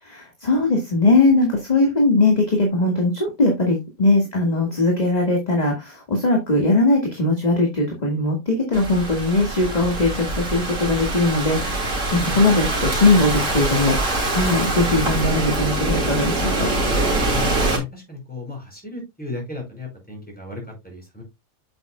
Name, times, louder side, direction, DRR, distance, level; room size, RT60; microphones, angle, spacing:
voice 1, 0.0-16.7, left 2 dB, 30° left, 1 dB, 1.8 m, -20 dB
Thunderstorm / Rain, 8.7-17.8, right 2 dB, 60° right, 3.2 m, -24 dB
voice 2, 17.2-21.2, left 3 dB, 5° left, 0 dB, 4.9 m, -35 dB
8.1 x 7.9 x 2.2 m, 0.21 s
omnidirectional pair, 1.5 m